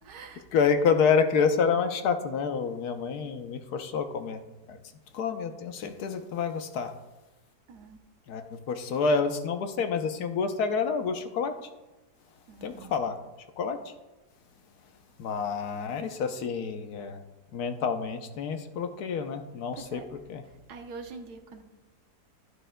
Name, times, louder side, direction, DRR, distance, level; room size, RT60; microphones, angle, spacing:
voice 1, 0.0-0.5 7.7-8.0 12.5-13.0 19.7-20.1 20.4-21.6, right 4 dB, 70° right, 1.4 m, -45 dB
voice 2, 0.5-4.4 4.7-4.8 5.1-6.9 8.3-11.7 12.6-13.2 13.6-13.9 15.2-17.2 17.5-20.0 20.3-20.4, left 5 dB, 70° left, 1.3 m, -28 dB
11.5 x 11.0 x 2.2 m
omnidirectional pair, 1.8 m